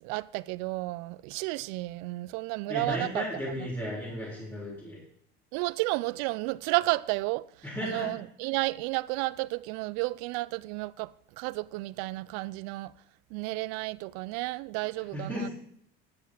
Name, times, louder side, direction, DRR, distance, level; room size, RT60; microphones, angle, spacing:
voice 1, 0.0-3.2 5.5-7.4 7.8-12.9 13.3-15.5, right 21 dB, 70° right, 0.4 m, -32 dB
voice 2, 2.7-5.0 7.6-8.1 15.1-15.5, left 1 dB, 10° left, 3.9 m, -34 dB
11.5 x 7.0 x 4.7 m
supercardioid pair, 95°, 29 cm